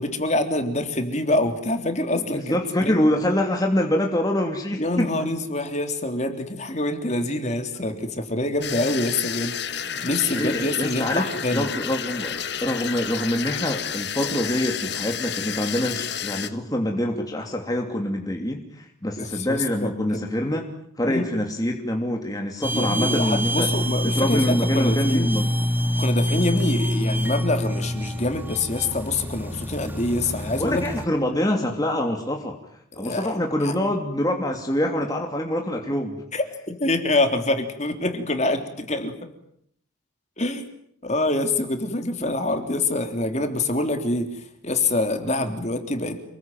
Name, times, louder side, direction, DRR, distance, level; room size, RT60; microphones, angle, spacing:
voice 1, 0.0-3.0 4.8-11.7 19.2-19.9 21.1-21.3 22.7-25.3 26.0-30.9 32.9-33.4 33.6-33.7 36.3-39.1 40.4-40.7 41.0-44.3 44.6-46.2, left 2 dB, 35° left, 6 dB, 3.5 m, -25 dB
voice 2, 2.1-5.1 9.9-10.0 10.3-11.2 11.5-20.6 21.0-23.7 24.0-25.5 30.6-32.6 33.0-36.2 45.2-45.5, left 1 dB, 20° left, 2 dB, 2.9 m, -25 dB
sound 1, 8.6-16.5, left 8 dB, 55° left, 1.7 m, -31 dB
sound 2, 22.6-31.1, equal, 10° right, 2.2 m, -26 dB
29.0 x 21.5 x 9.3 m, 0.70 s
head